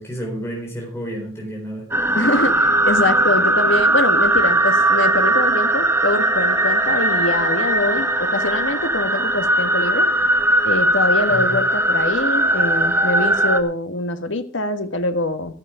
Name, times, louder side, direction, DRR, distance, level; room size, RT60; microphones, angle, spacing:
voice 1, 0.0-2.2 11.3-11.5, right 1 dB, 15° left, -1 dB, 3.9 m, -31 dB
sound 1, 1.9-13.6, right 1 dB, 10° right, 1.2 m, -18 dB
voice 2, 2.2-10.1 10.6-15.5, left 2 dB, 85° left, 8 dB, 1.6 m, -24 dB
14.0 x 10.5 x 5.0 m, 0.39 s
head